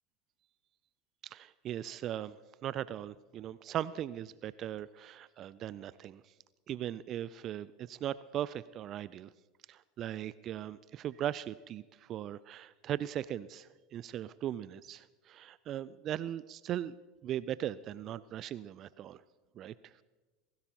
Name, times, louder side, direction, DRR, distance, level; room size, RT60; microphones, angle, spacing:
voice 1, 1.2-2.4 2.6-6.2 6.7-9.3 9.7-16.9 17.2-19.2 19.6-19.9, right 11 dB, 45° right, 18 dB, 0.4 m, -39 dB
22.5 x 16.5 x 2.9 m, 1.2 s
hypercardioid pair, 85°, 0 cm